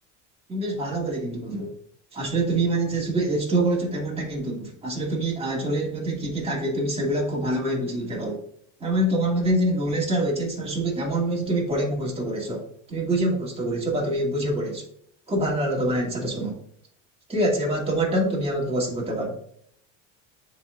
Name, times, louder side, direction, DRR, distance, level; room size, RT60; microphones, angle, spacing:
voice 1, 0.5-1.7 2.1-8.4 8.8-12.6 12.9-14.8 15.3-16.6 17.3-19.4, right 1 dB, 15° right, -2 dB, 2.3 m, -25 dB
9.9 x 4.0 x 2.4 m, 0.66 s
supercardioid pair, 105°, 38 cm